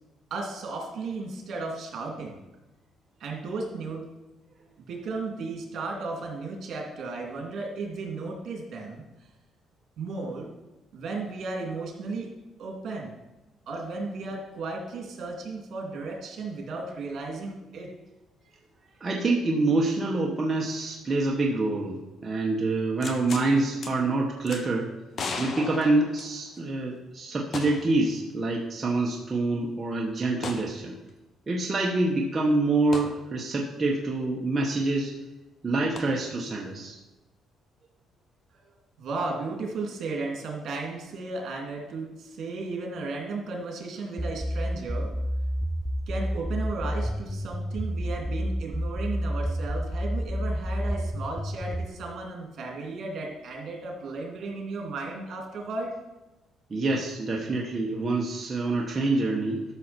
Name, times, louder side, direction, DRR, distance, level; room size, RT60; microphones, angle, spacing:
voice 1, 0.3-2.4 3.2-4.1 4.8-9.0 10.0-10.5 10.9-12.3 12.6-13.1 13.7-17.9 38.5-38.6 39.0-45.1 46.1-56.0, right 3 dB, 60° right, 0 dB, 2.8 m, -34 dB
voice 2, 19.0-24.9 25.4-30.9 31.5-35.1 35.6-37.0 56.7-59.6, right 2 dB, 25° right, -2 dB, 1.1 m, -26 dB
sound 1, 23.0-23.5 23.8-23.9 24.5-24.6 25.1-26.7 27.5-28.0 28.3-28.4 30.4-30.7 32.9-33.1 36.0-36.1, left 4 dB, 45° left, 1.1 m, -36 dB
sound 2, 44.2-51.9, equal, 10° right, 0.5 m, -29 dB
12.5 x 6.4 x 4.4 m, 1.1 s
cardioid pair, 120°, 0 cm